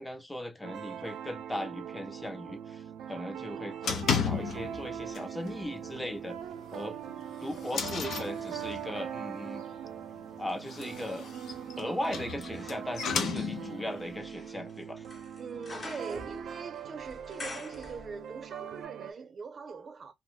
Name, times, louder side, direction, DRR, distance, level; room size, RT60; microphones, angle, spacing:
voice 1, 0.0-6.4 6.7-7.0 7.4-9.6 10.4-11.3 11.8-15.0, left 1 dB, 10° left, 0.5 m, -38 dB
sound 1, 0.6-19.1, right 9 dB, 90° right, 0.4 m, -41 dB
sound 2, 3.8-4.9 5.1-5.5 5.8-5.9 6.4-6.5 7.1-9.0 10.5-13.9, left 6 dB, 65° left, 0.6 m, -33 dB
sound 3, 4.5-6.7 7.2-18.5 18.8-18.9, left 2 dB, 35° left, 0.8 m, -50 dB
voice 2, 15.4-20.1, right 5 dB, 40° right, 0.5 m, -42 dB
2.5 x 2.2 x 3.6 m
cardioid pair, 105°, 0 cm